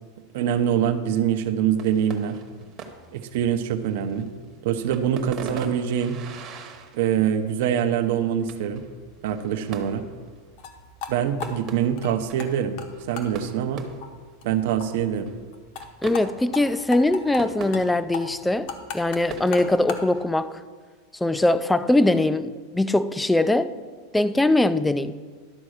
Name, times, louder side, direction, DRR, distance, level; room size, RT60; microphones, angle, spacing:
voice 1, 0.3-2.4 3.1-4.3 4.6-6.2 6.9-8.8 9.2-10.0 11.1-12.8 13.1-13.8 14.4-15.3, right 9 dB, 65° right, 0.8 m, -24 dB
sound 1, 1.8-20.2, right 5 dB, 30° right, 1.0 m, -43 dB
sound 2, 10.6-10.7 11.0-11.1 11.4-12.5 12.8-12.9 13.2-13.3 13.6-13.7 14.0-14.1 14.4-14.5 14.8-14.9 15.1-15.2 15.5-15.9 16.1-16.2 16.5-16.6 16.9-17.4 17.7-17.9 18.1-20.1, left 7 dB, 50° left, 1.0 m, -35 dB
voice 2, 16.0-18.7 18.9-20.6 21.2-23.7 24.1-25.2, left 2 dB, 5° left, 0.3 m, -21 dB
11.5 x 4.2 x 6.4 m
supercardioid pair, 155°, 0 cm